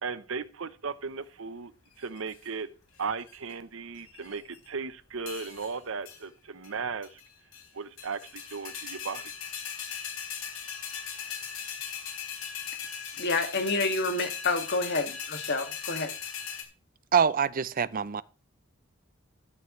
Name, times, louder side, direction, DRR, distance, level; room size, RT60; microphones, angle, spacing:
voice 1, 0.0-1.7 2.0-2.7 3.0-7.2 7.7-9.3, right 5 dB, 70° right, 0.8 m, -36 dB
sound 1, 2.0-2.5 3.0-3.5 4.0-4.6 5.3-5.8 6.0-6.2 6.6-6.7 7.0-7.7 8.0-16.6, left 7 dB, 85° left, 4.2 m, -39 dB
voice 2, 13.1-16.1, left 3 dB, 55° left, 2.0 m, -29 dB
voice 3, 17.1-18.2, right 7 dB, 45° right, 0.5 m, -25 dB
14.0 x 13.0 x 3.1 m
head